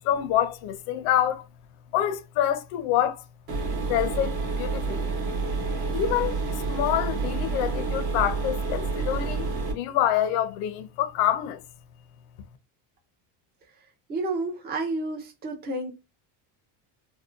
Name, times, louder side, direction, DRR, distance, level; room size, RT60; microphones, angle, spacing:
voice 1, 0.0-1.5 1.9-3.3 3.9-5.1 5.9-11.6, left 11 dB, 75° left, 0.6 m, -26 dB
sound 1, 3.5-9.7, right 4 dB, 50° right, 0.9 m, -29 dB
voice 2, 14.1-15.9, right 2 dB, 20° right, 0.4 m, -30 dB
2.6 x 2.1 x 2.3 m
cardioid pair, 150°, 48 cm